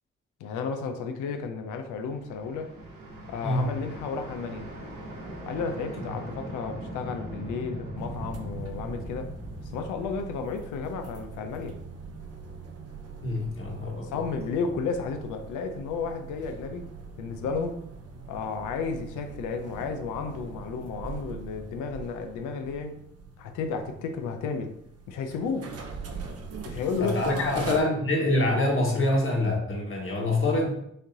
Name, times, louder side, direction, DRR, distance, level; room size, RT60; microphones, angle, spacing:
voice 1, 0.4-2.8 3.3-4.7 5.5-9.3 9.6-11.8 14.0-16.9 17.2-17.8 18.3-23.0 23.4-24.7 25.1-25.7 26.6-27.7, left 5 dB, 75° left, 7 dB, 0.6 m, -32 dB
sound 1, 1.6-11.6, right 1 dB, 80° right, 1.3 m, -40 dB
sound 2, 8.0-27.8, right 4 dB, 50° right, 0.8 m, -42 dB
voice 2, 13.2-14.1 27.0-30.8, left 2 dB, 40° left, -1 dB, 1.6 m, -25 dB
4.9 x 3.0 x 2.7 m, 0.76 s
hypercardioid pair, 40°, 31 cm